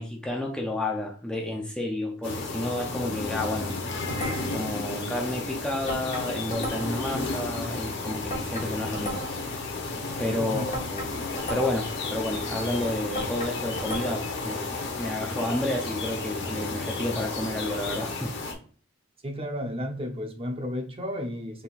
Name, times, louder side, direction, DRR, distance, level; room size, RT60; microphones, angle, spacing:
voice 1, 0.0-3.7 4.1-9.2 10.2-11.1 11.5-14.7 15.0-18.3, left 1 dB, 5° left, 0.5 m, -31 dB
sound 1, 2.2-18.5, left 3 dB, 60° left, 0.9 m, -33 dB
sound 2, 4.1-4.7 5.9-7.1 8.3-9.5 10.7-11.9 13.1-14.4, equal, 35° left, 1.3 m, -36 dB
voice 2, 19.2-21.6, equal, 30° right, 0.7 m, -33 dB
4.3 x 3.6 x 2.4 m
head